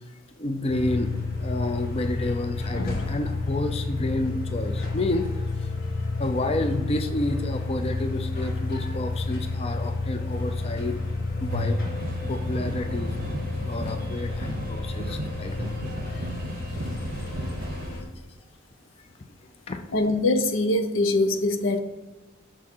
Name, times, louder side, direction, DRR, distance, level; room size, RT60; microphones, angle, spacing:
voice 1, 0.1-5.7 6.2-11.0 11.4-11.8 12.3-13.2 13.6-15.7 19.0-19.1 19.7-19.9, left 1 dB, 30° left, 6 dB, 0.5 m, -30 dB
sound 1, 0.7-18.0, left 3 dB, 50° left, 1.6 m, -30 dB
sound 2, 11.5-17.9, right 2 dB, 45° right, 0.6 m, -36 dB
voice 2, 19.9-21.8, left 2 dB, 80° left, 7 dB, 0.8 m, -23 dB
6.2 x 6.2 x 4.4 m, 1.1 s
head